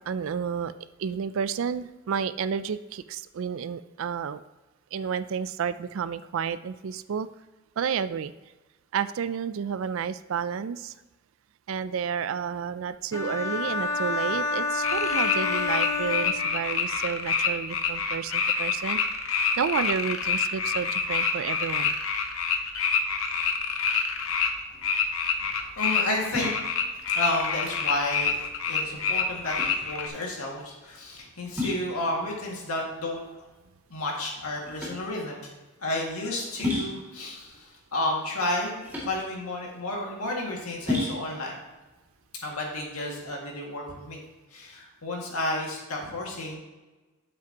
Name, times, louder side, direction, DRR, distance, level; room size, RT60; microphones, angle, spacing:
voice 1, 0.1-0.7 1.0-4.4 4.9-7.3 7.8-8.3 8.9-10.9 11.7-19.0 19.6-22.0, right 7 dB, 65° right, 14 dB, 0.3 m, -31 dB
sound 1, 13.1-17.0, left 4 dB, 15° left, 0.6 m, -29 dB
sound 2, 14.8-24.5 24.8-30.1, left 6 dB, 65° left, 0.8 m, -27 dB
sound 3, 24.7-43.3, left 2 dB, 10° right, 2.2 m, -36 dB
voice 2, 25.5-26.6 27.1-33.2 33.9-35.5 35.8-41.6 42.4-44.2 44.5-46.6, left 1 dB, 85° left, -1 dB, 2.0 m, -32 dB
9.3 x 7.5 x 2.9 m, 1.2 s
head